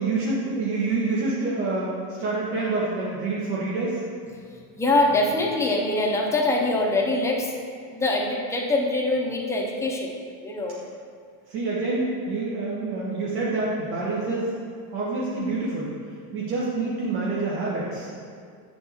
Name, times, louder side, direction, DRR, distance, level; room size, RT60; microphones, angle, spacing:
voice 1, 0.0-1.9 2.2-4.0 11.5-14.5 14.9-15.9 16.3-18.1, right 3 dB, 90° right, -6 dB, 1.3 m, -27 dB
voice 2, 4.8-7.5 7.9-10.8, left 2 dB, 5° left, -1 dB, 0.4 m, -24 dB
8.7 x 4.3 x 3.5 m, 2.1 s
cardioid pair, 150°, 45 cm